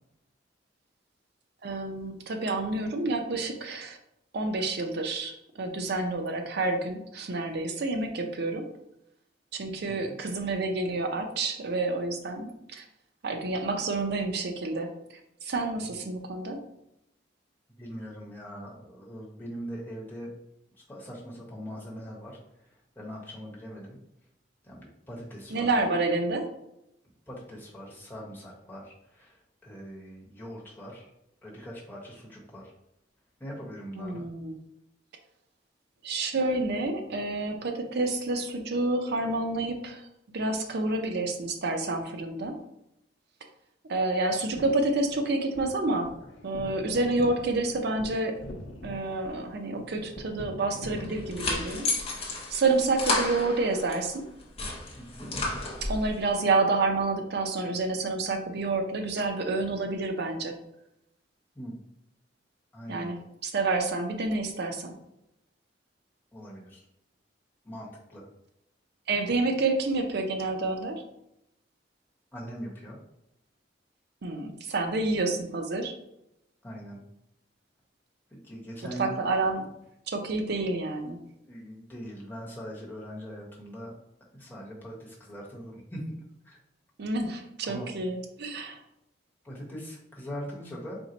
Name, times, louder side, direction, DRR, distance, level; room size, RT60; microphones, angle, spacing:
voice 1, 1.6-4.0 4.3-8.7 9.5-12.8 13.2-14.9 15.4-16.6 25.5-26.5 34.0-34.6 36.0-40.0 40.3-42.6 43.9-46.1 46.4-48.3 48.8-51.9 52.5-54.2 55.8-60.6 62.9-63.2 63.4-64.9 69.1-71.0 74.2-75.9 79.0-79.7 80.1-81.2 87.0-88.8, right 3 dB, 60° right, 5 dB, 0.6 m, -29 dB
voice 2, 17.8-20.3 20.9-24.0 24.6-25.7 27.3-31.1 31.4-32.7 33.4-34.2 54.9-55.3 61.5-61.8 62.7-63.1 66.3-66.8 67.6-68.2 72.3-73.0 76.6-77.0 78.3-79.5 81.4-83.9 84.3-86.1 86.4-86.6 87.6-87.9 89.4-91.0, equal, 10° left, -4 dB, 1.0 m, -41 dB
sound 1, 44.4-51.5, left 1 dB, 90° left, 0.6 m, -44 dB
sound 2, 51.0-54.0 54.4-56.1, left 2 dB, 35° left, 0.8 m, -32 dB
4.4 x 2.1 x 3.9 m, 0.82 s
head